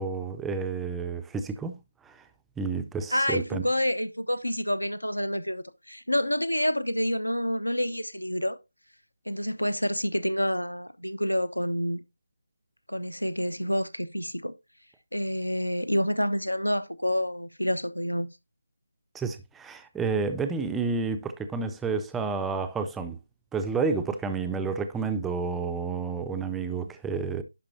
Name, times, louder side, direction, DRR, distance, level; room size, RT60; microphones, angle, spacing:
voice 1, 0.0-2.2 2.6-3.6 19.1-23.2 23.5-27.4, right 4 dB, 5° right, 0.4 m, -30 dB
voice 2, 3.1-8.6 9.3-12.0 12.9-14.5 15.1-18.3, equal, 85° left, 0.8 m, -28 dB
11.0 x 5.0 x 2.7 m
figure-of-eight pair, 160°, 0 cm